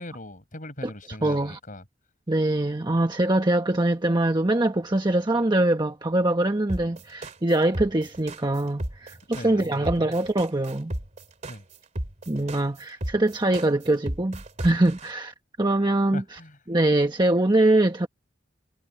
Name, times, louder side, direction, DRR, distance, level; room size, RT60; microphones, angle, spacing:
voice 1, 0.0-1.8 9.3-10.1 11.5-11.6 16.1-16.6, left 1 dB, 45° left, 7.7 m, -39 dB
voice 2, 1.2-1.6 2.3-10.9 12.3-16.4 16.7-18.1, right 1 dB, 25° right, 1.1 m, -23 dB
sound 1, 6.7-15.1, right 1 dB, 40° right, 2.4 m, -33 dB
head